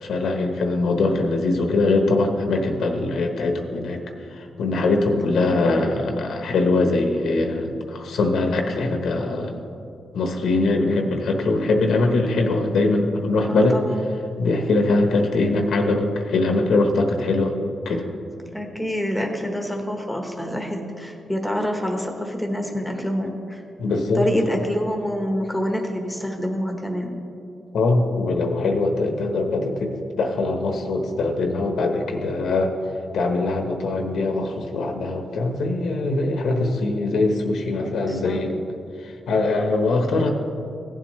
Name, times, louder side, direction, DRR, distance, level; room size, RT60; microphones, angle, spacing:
voice 1, 0.0-4.0 4.3-9.6 10.1-13.8 14.4-17.6 17.8-18.1 23.8-24.2 27.7-32.7 33.1-38.6 39.0-40.3, left 2 dB, 80° left, 4 dB, 1.1 m, -22 dB
voice 2, 5.5-5.9 13.5-14.1 18.5-23.6 24.1-27.2 38.1-38.4, equal, 5° left, 3 dB, 1.2 m, -26 dB
16.0 x 7.5 x 3.2 m, 2.6 s
cardioid pair, 95°, 0 cm